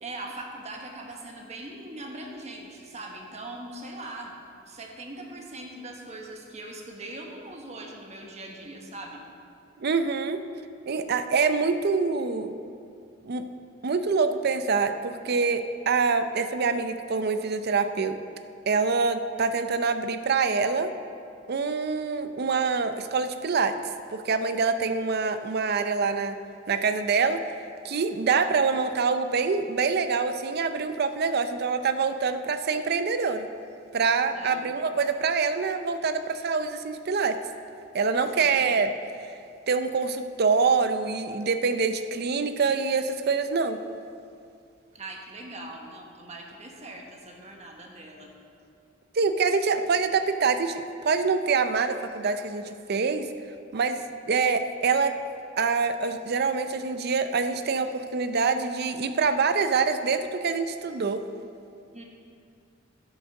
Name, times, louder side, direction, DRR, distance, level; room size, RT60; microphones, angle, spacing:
voice 1, 0.0-4.3 4.7-9.2 34.3-34.7 38.3-38.7 44.9-48.3 61.9-62.0, right 2 dB, 35° right, 1 dB, 1.2 m, -41 dB
voice 2, 9.8-10.4 10.9-12.6 13.2-13.5 13.8-18.2 18.7-20.9 21.5-23.7 24.1-26.4 26.7-27.4 27.8-33.5 33.9-37.4 37.9-38.9 39.2-39.3 39.7-43.8 49.1-53.3 53.7-54.0 54.3-55.2 55.6-61.2, right 5 dB, 55° right, 10 dB, 0.5 m, -25 dB
10.5 x 6.4 x 6.4 m, 2.4 s
head